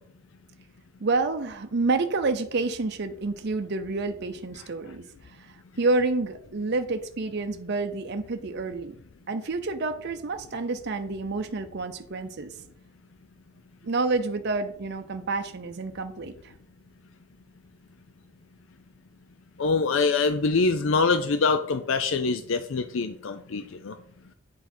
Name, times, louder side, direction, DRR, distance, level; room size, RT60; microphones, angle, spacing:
voice 1, 1.0-5.0 5.4-8.9 9.3-12.5 13.8-16.3, right 3 dB, 55° right, 7 dB, 0.6 m, -28 dB
voice 2, 19.6-23.9, left 4 dB, 65° left, 9 dB, 0.5 m, -24 dB
8.1 x 4.9 x 4.3 m, 0.63 s
head